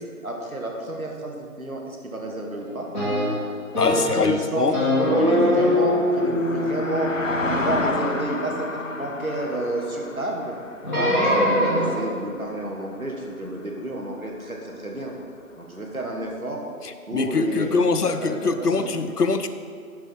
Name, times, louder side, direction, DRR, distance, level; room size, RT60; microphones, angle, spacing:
voice 1, 0.0-2.9 3.9-4.7 5.2-10.6 10.9-15.1 15.6-16.6 17.1-18.0 18.2-18.9, right 1 dB, 65° right, 0 dB, 1.7 m, -30 dB
sound 1, 2.9-4.3 4.7-9.0 10.8-12.2, left 1 dB, 30° left, 2.2 m, -23 dB
voice 2, 3.8-4.8 17.1-19.5, left 4 dB, 85° left, 10 dB, 0.7 m, -23 dB
sound 2, 5.4-12.7 13.3-13.5, left 3 dB, 55° left, 0.5 m, -32 dB
12.0 x 4.8 x 4.5 m, 2.2 s
figure-of-eight pair, 180°, 46 cm